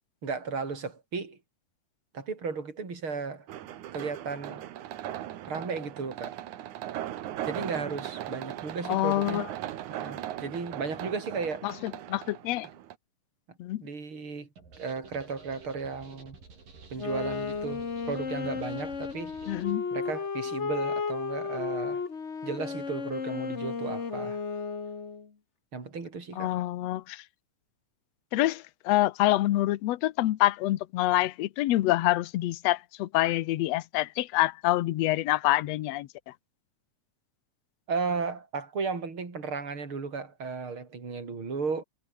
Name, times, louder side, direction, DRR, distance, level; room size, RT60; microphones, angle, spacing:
voice 1, 0.2-1.4 2.1-3.5 3.9-4.6 5.5-6.4 7.5-9.5 9.9-11.7 13.8-14.5 14.8-16.4 16.9-19.3 19.9-22.0 22.4-24.4 25.7-26.5 37.9-41.8, right 4 dB, 40° right, 5.5 m, -34 dB
sound 1, 3.5-12.9, right 12 dB, 70° right, 2.6 m, -38 dB
voice 2, 8.9-9.5 11.6-12.7 13.6-13.8 19.5-19.8 26.4-27.2 28.3-36.1, left 16 dB, 70° left, 1.7 m, -26 dB
sound 2, 14.6-19.7, right 4 dB, 90° right, 8.0 m, -51 dB
Wind instrument woodwind instrument, 16.9-25.3, left 5 dB, 40° left, 1.0 m, -34 dB
omnidirectional pair, 3.8 m